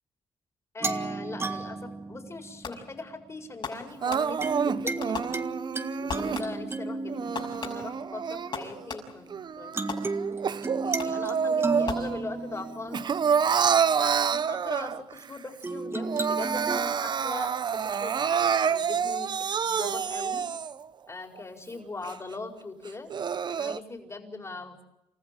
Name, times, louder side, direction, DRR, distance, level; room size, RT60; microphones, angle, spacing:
voice 1, 0.7-5.4 6.0-9.9 10.8-13.1 14.0-19.3 19.7-20.4 21.1-23.1 23.5-24.9, left 3 dB, 25° left, 4 dB, 4.9 m, -40 dB
sound 1, 0.8-3.1 4.4-9.2 9.7-13.9 15.6-16.8, right 3 dB, 25° right, 1.8 m, -34 dB
Fireworks, 2.6-3.1 3.6-4.6 5.0-5.8 6.1-6.8 7.4-9.3 9.9-10.5 11.0-11.4 11.9-12.6, left 5 dB, 50° left, 6.4 m, -39 dB
Crying sobbing, 4.0-6.4 7.1-8.8 9.3-12.2 12.5-15.2 15.6-15.7 16.0-20.8 21.4-21.5 22.0-22.1 22.9-23.8, right 7 dB, 45° right, 0.8 m, -28 dB
28.5 x 15.0 x 9.1 m, 0.89 s
cardioid pair, 75°, 10 cm